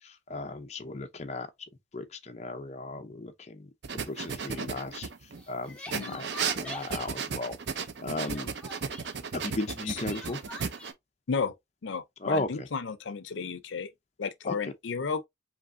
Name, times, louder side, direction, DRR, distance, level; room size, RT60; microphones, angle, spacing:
voice 1, 0.0-1.5 1.9-5.1 5.5-6.3 6.5-7.6 8.0-8.5 9.3-10.4 12.2-12.7 14.4-14.7, left 2 dB, 35° left, 0.6 m, -35 dB
sound 1, 3.8-5.4 5.9-10.9, right 6 dB, 65° right, 0.6 m, -35 dB
Crying sobbing, 4.2-4.5 5.4-7.1 8.2-9.1 10.0-10.9, left 2 dB, 5° left, 1.0 m, -44 dB
voice 2, 5.9-6.2 9.9-10.0 11.3-11.6 11.8-13.9 14.2-15.2, left 5 dB, 80° left, 0.5 m, -33 dB
5.1 x 3.0 x 2.6 m
head